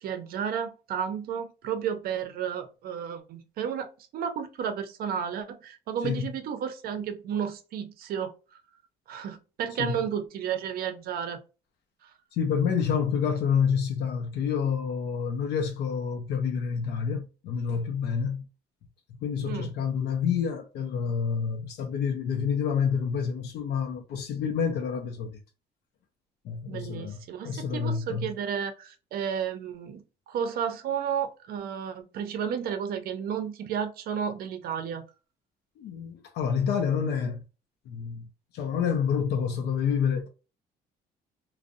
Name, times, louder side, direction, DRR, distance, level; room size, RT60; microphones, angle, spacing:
voice 1, 0.0-8.3 9.1-11.4 12.0-12.1 19.4-19.7 26.7-35.1, right 8 dB, 65° right, 0.5 m, -32 dB
voice 2, 12.3-18.5 19.2-25.3 26.4-28.3 35.8-37.4 37.9-38.3 38.5-40.3, left 7 dB, 75° left, 0.4 m, -28 dB
2.6 x 2.0 x 2.4 m
cardioid pair, 110°, 17 cm